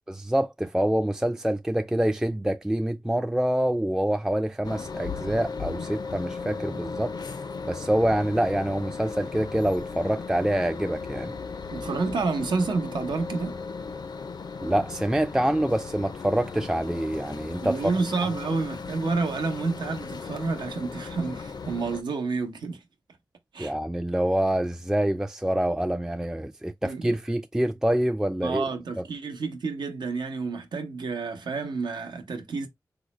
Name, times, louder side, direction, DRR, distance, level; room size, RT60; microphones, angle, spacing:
voice 1, 0.1-7.1 7.6-11.3 14.6-17.8 23.6-28.6 29.0-29.1, right 1 dB, 10° right, 0.3 m, -26 dB
sound 1, 4.6-22.0, left 5 dB, 65° left, 0.5 m, -36 dB
voice 2, 11.7-13.6 17.6-22.8 23.5-23.7 26.8-27.1 28.4-32.7, right 4 dB, 90° right, 0.7 m, -29 dB
3.8 x 2.0 x 3.0 m
cardioid pair, 45°, 7 cm